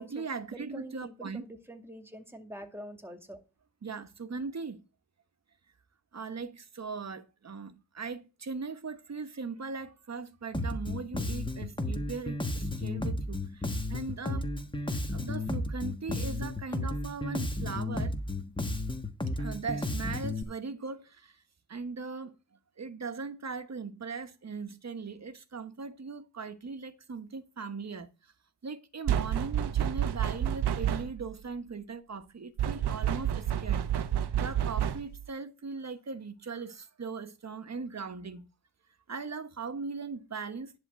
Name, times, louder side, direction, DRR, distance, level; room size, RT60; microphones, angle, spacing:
voice 1, 0.0-1.4 3.8-4.8 6.1-14.5 14.9-18.1 19.4-21.4 21.7-22.4 22.8-28.3 28.6-38.5 39.1-40.8, right 4 dB, 40° right, 1.2 m, -39 dB
voice 2, 0.5-3.4, right 1 dB, 5° right, 2.3 m, -45 dB
Bass guitar, 10.5-20.4, left 1 dB, 10° left, 1.3 m, -33 dB
sound 1, 29.1-31.3 32.6-35.2, right 10 dB, 80° right, 0.9 m, -29 dB
11.0 x 3.7 x 7.4 m
cardioid pair, 65°, 40 cm